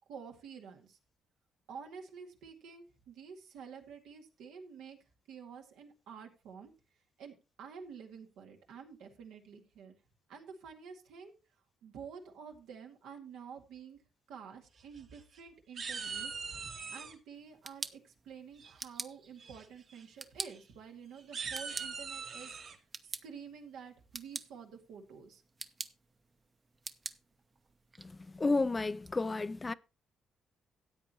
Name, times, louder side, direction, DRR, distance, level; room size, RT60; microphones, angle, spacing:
voice 1, 0.1-1.0 1.7-5.0 5.3-6.7 7.2-10.0 10.3-11.3 11.8-14.0 14.3-16.3 16.9-22.6 23.0-25.4, right 6 dB, 90° right, 2.1 m, -50 dB
sound 1, 14.8-15.4 15.8-17.1 18.6-19.0 19.4-19.6 19.9-20.0 20.4-20.6 21.2-22.8, right 5 dB, 60° right, 1.7 m, -41 dB
sound 2, 17.4-29.1, right 3 dB, 30° right, 0.8 m, -48 dB
voice 2, 28.3-29.7, left 3 dB, 25° left, 0.4 m, -31 dB
13.5 x 8.6 x 3.0 m
cardioid pair, 90°, 0 cm